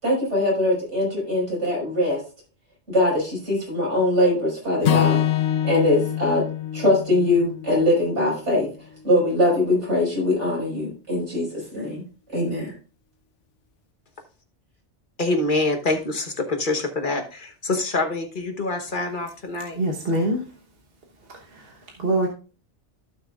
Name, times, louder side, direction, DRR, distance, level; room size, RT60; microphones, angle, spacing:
voice 1, 0.0-2.2 2.9-5.2 5.6-6.4 6.7-8.7 9.0-12.0 12.3-12.7, left 1 dB, 85° right, -4 dB, 5.5 m, -22 dB
Acoustic guitar / Strum, 4.8-9.1, left 11 dB, 90° left, 1.0 m, -26 dB
voice 2, 15.2-19.8, left 2 dB, 45° left, 5 dB, 1.2 m, -25 dB
voice 3, 19.7-20.4 21.3-22.3, right 1 dB, 55° right, 1 dB, 1.4 m, -25 dB
15.5 x 5.9 x 2.4 m, 0.34 s
omnidirectional pair, 1.2 m